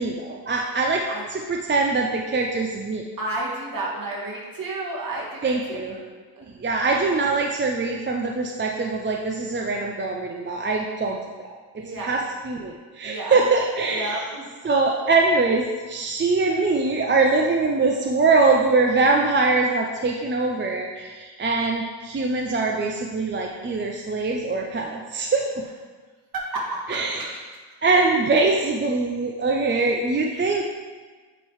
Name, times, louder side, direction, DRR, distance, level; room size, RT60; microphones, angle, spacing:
voice 1, 0.0-1.0 1.3-3.0 5.4-6.0 6.6-11.5 11.7-14.2 14.6-25.6 26.9-27.3 27.8-30.6, right 3 dB, 25° right, 1 dB, 0.5 m, -23 dB
voice 2, 3.2-6.0 6.4-6.5 11.8-12.2 13.0-13.4 13.9-14.5 26.3-27.2 30.3-30.4, right 2 dB, 45° right, -4 dB, 2.0 m, -31 dB
8.8 x 3.1 x 4.7 m, 1.4 s
cardioid pair, 80°, 47 cm